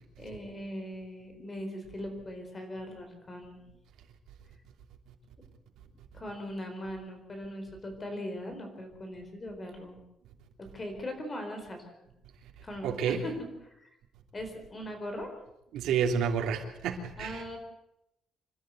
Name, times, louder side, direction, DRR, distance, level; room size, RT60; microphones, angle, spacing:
voice 1, 0.2-3.6 6.1-10.0 10.7-11.9 12.6-13.9 14.3-15.3 17.2-17.6, left 1 dB, 20° left, 5 dB, 4.4 m, -40 dB
voice 2, 12.8-13.2 15.7-17.4, right 7 dB, 80° right, 2 dB, 3.2 m, -29 dB
26.5 x 12.5 x 8.0 m, 0.85 s
cardioid pair, 170°, 0 cm